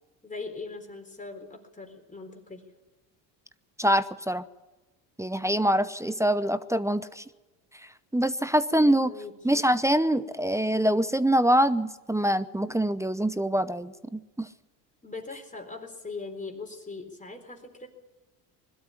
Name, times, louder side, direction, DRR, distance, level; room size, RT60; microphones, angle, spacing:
voice 1, 0.2-2.7 8.9-9.3 15.0-17.9, left 3 dB, 15° left, 4 dB, 3.9 m, -40 dB
voice 2, 3.8-4.4 5.2-7.2 8.1-9.1 9.4-14.5, right 1 dB, 5° right, 14 dB, 0.7 m, -24 dB
21.0 x 13.0 x 9.7 m, 1.2 s
supercardioid pair, 85°, 49 cm